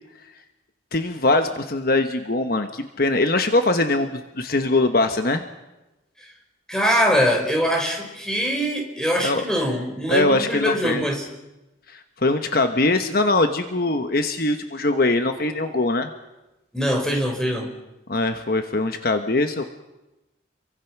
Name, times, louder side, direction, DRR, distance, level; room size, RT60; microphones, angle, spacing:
voice 1, 0.9-5.4 9.2-9.4 10.1-11.0 11.9-16.1 18.1-19.6, left 2 dB, 50° left, 7 dB, 1.2 m, -22 dB
voice 2, 6.7-11.3 16.7-17.7, equal, 5° left, 1 dB, 4.4 m, -22 dB
29.5 x 23.5 x 6.0 m, 1.0 s
head